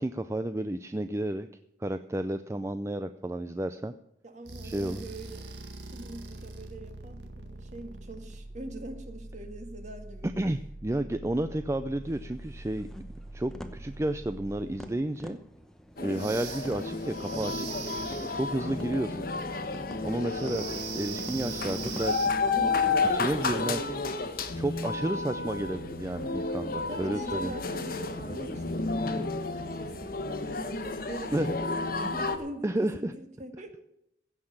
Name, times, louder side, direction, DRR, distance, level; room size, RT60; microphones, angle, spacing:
voice 1, 0.0-1.5 1.8-3.9 4.6-5.0 10.2-12.9 13.3-15.4 16.0-17.7 18.3-19.3 20.0-22.3 23.1-23.8 24.3-27.5 31.3-31.6 32.0-32.1 32.6-33.1, right 1 dB, 15° right, 10 dB, 0.4 m, -31 dB
voice 2, 4.2-5.5 5.9-10.3 16.0-16.2 18.7-19.1 22.5-22.9 26.8-33.9, right 1 dB, 40° right, 6 dB, 1.8 m, -43 dB
sound 1, 4.4-14.9 16.1-18.5 20.1-22.3, right 4 dB, 75° right, 1.9 m, -43 dB
sound 2, 12.0-23.6, equal, 5° left, 0.9 m, -47 dB
sound 3, 16.0-32.4, left 3 dB, 50° left, 1.2 m, -31 dB
16.0 x 5.9 x 8.8 m, 0.79 s
head